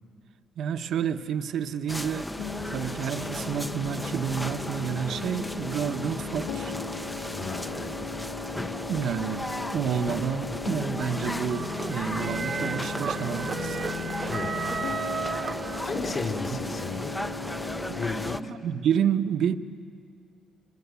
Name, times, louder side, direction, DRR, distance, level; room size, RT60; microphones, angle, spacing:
voice 1, 0.6-2.3 2.7-6.7 8.9-13.8 16.5-16.6 17.9-18.0 18.4-19.6, right 8 dB, 70° right, 1.0 m, -29 dB
sound 1, 1.9-18.4, left 1 dB, 10° left, 0.7 m, -36 dB
sound 2, 2.4-18.4, left 4 dB, 80° left, 2.1 m, -37 dB
voice 2, 7.4-7.9 14.3-14.5 15.8-17.1 17.9-18.5, left 3 dB, 40° left, 4.9 m, -33 dB
sound 3, 11.5-16.3, right 6 dB, 50° right, 1.0 m, -34 dB
26.0 x 24.0 x 8.3 m
cardioid pair, 90°, 0 cm